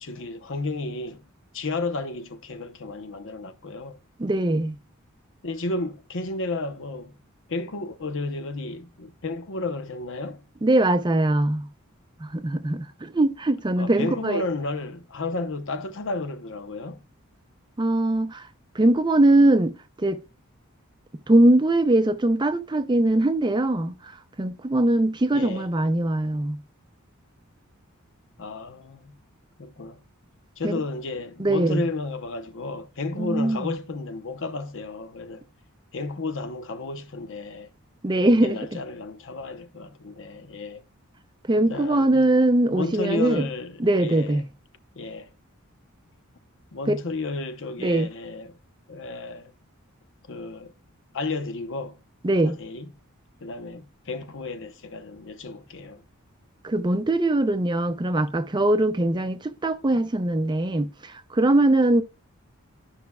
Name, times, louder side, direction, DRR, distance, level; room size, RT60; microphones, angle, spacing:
voice 1, 0.0-1.2 1.5-4.0 5.4-7.2 7.5-10.4 13.8-17.0 25.3-25.7 28.4-29.2 29.6-30.0 30.6-35.4 35.9-37.7 38.2-40.8 41.7-42.3 42.7-44.4 45.0-45.3 46.7-48.6 48.9-49.5 50.3-50.7 51.1-52.0 52.4-52.9 53.4-56.0, left 3 dB, 60° left, 0.8 m, -32 dB
voice 2, 4.2-4.8 10.6-11.7 12.2-14.4 17.8-18.5 18.7-20.2 21.3-24.0 24.4-26.6 30.6-30.8 31.4-31.8 33.2-33.7 38.0-38.6 41.5-43.4 43.8-44.4 46.9-47.0 47.8-48.1 52.2-52.6 56.6-62.0, right 1 dB, 20° right, 0.5 m, -21 dB
11.5 x 5.7 x 2.3 m
head